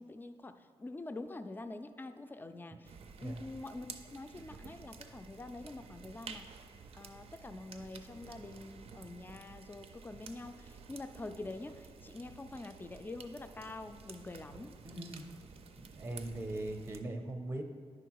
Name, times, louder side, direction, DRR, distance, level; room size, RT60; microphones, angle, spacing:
voice 1, 0.0-2.9 3.2-6.5 6.9-14.7, left 2 dB, 20° left, 9 dB, 0.4 m, -46 dB
sound 1, 2.8-17.0, right 5 dB, 65° right, 0.5 m, -52 dB
voice 2, 14.8-15.3 15.8-17.6, right 1 dB, 20° right, 5 dB, 0.6 m, -40 dB
9.9 x 3.6 x 4.6 m, 2.1 s
cardioid pair, 105°, 11 cm